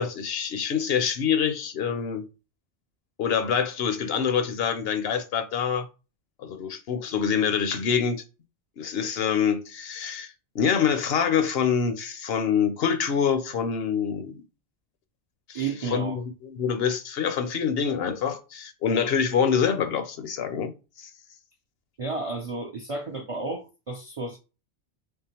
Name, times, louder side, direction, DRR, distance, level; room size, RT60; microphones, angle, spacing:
voice 1, 0.0-2.3 3.2-5.9 6.4-8.2 8.8-14.4 15.5-15.6 15.9-20.7 21.0-21.1, left 7 dB, 65° left, 0.8 m, -26 dB
voice 2, 15.5-16.2 22.0-24.4, right 3 dB, 50° right, 0.4 m, -32 dB
3.7 x 3.4 x 2.9 m
omnidirectional pair, 1.2 m